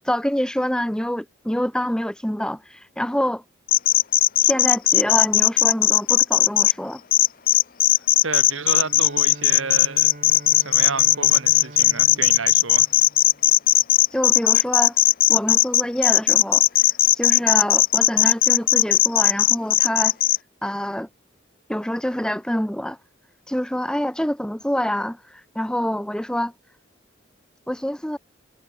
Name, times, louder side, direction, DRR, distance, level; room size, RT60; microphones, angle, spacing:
voice 1, 0.1-3.4 4.4-7.0 14.1-15.0 15.3-16.6 17.2-20.2 20.6-21.1 21.7-23.0 23.5-26.5 27.7-28.2, equal, 5° left, 0.7 m, -26 dB
sound 1, 3.7-6.7 7.1-20.4, left 15 dB, 45° left, 0.6 m, -17 dB
voice 2, 8.2-10.1 10.5-12.9, right 4 dB, 85° right, 2.8 m, -31 dB
Bowed string instrument, 8.7-14.0, right 1 dB, 40° right, 4.5 m, -43 dB
head